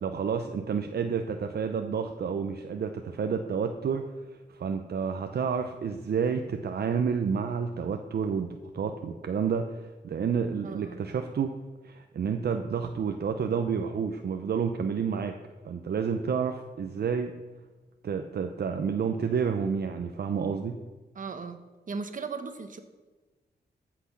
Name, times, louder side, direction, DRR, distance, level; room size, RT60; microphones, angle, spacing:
voice 1, 0.0-4.0 4.3-8.5 8.7-11.5 11.8-15.3 15.6-17.3 18.0-20.7, right 6 dB, 65° right, 6 dB, 0.7 m, -30 dB
voice 2, 10.6-11.0 21.1-21.6 21.9-22.8, right 4 dB, 45° right, 8 dB, 1.1 m, -37 dB
14.5 x 6.0 x 5.9 m, 1.2 s
wide cardioid pair, 110°, 18 cm